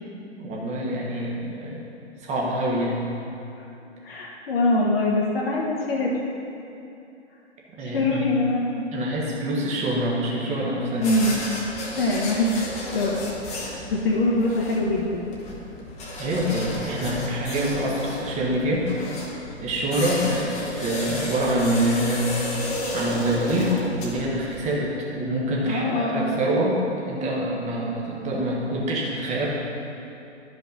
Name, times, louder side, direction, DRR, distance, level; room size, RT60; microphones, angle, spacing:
voice 1, 0.4-1.8 2.2-3.1 7.8-8.3 8.9-11.4 16.2-19.2 19.6-20.5 20.8-22.3 22.9-26.8 27.1-29.5, right 1 dB, 20° right, -4 dB, 1.3 m, -26 dB
voice 2, 4.0-6.1 7.8-8.8 10.7-11.4 12.0-12.5 12.8-15.3 25.6-26.4, left 2 dB, 55° left, -4 dB, 1.1 m, -24 dB
sound 1, 10.9-24.8, left 1 dB, 20° left, 1.0 m, -33 dB
11.5 x 5.4 x 3.9 m, 2.8 s
figure-of-eight pair, 115°, 35 cm